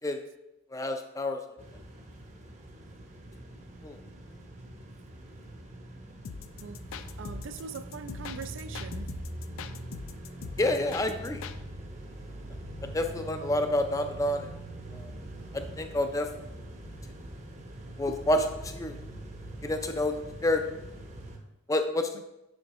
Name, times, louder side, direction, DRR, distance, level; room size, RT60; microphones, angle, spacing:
voice 1, 0.7-1.4 3.8-4.0 10.6-11.4 12.8-14.5 14.9-15.1 15.5-16.3 18.0-19.0 19.6-20.6 21.7-22.2, left 1 dB, 15° left, 6 dB, 0.4 m, -29 dB
sound 1, 1.6-21.4, right 1 dB, 35° right, 0.7 m, -43 dB
sound 2, 6.2-11.6, left 6 dB, 80° left, 0.4 m, -42 dB
voice 2, 7.2-9.2 22.1-22.2, right 5 dB, 65° right, 10 dB, 0.4 m, -41 dB
7.0 x 6.3 x 3.0 m, 0.93 s
head